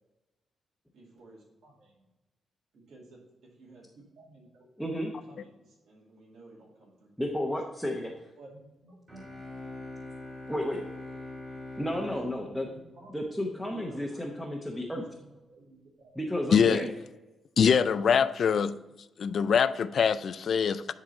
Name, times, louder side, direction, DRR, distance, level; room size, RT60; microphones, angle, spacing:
voice 1, 0.9-1.9 2.7-3.2 3.6-5.5 5.8-7.1 8.4-9.0 12.1-13.2 13.4-14.6 14.9-15.3 15.6-15.8, right 2 dB, 70° right, -5 dB, 2.3 m, -53 dB
voice 2, 4.8-5.1 7.2-8.1 10.5-10.8 11.8-12.7 13.1-15.0 16.1-16.9, left 1 dB, ahead, -1 dB, 0.9 m, -32 dB
sound 1, 9.1-13.8, left 2 dB, 25° right, 2.6 m, -43 dB
voice 3, 16.5-16.8 17.6-18.8 19.2-20.9, left 7 dB, 55° left, 14 dB, 0.4 m, -24 dB
10.5 x 3.9 x 4.1 m, 1.0 s
cardioid pair, 125°, 0 cm